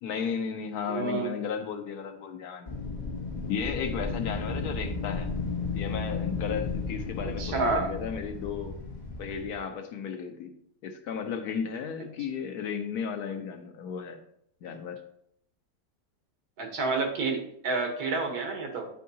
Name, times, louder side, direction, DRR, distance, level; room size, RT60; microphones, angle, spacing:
voice 1, 0.0-2.7 3.5-5.3 5.7-8.8 9.2-10.5 10.8-14.2 14.6-15.0, left 7 dB, 90° left, 6 dB, 1.3 m, -34 dB
voice 2, 0.9-1.3 7.4-7.9 16.6-18.9, right 3 dB, 80° right, 3 dB, 1.7 m, -29 dB
Wind, 2.7-9.6, left 4 dB, 30° left, 1.4 m, -34 dB
9.3 x 4.6 x 2.7 m, 0.71 s
omnidirectional pair, 1.6 m